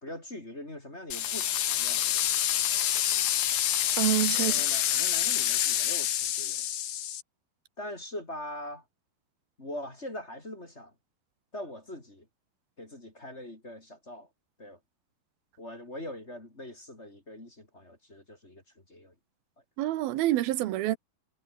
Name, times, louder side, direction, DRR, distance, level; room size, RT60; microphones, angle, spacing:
voice 1, 0.0-2.2 2.9-3.0 4.4-6.7 7.8-8.8 9.6-10.9 11.5-12.3 12.8-14.3 14.6-14.8 15.6-18.6 18.9-19.1, left 1 dB, 20° left, 3.6 m, -42 dB
sound 1, 1.1-7.2, left 11 dB, 80° left, 1.2 m, -27 dB
voice 2, 4.0-4.5 19.8-21.0, right 14 dB, 85° right, 3.0 m, -27 dB
omnidirectional pair, 4.3 m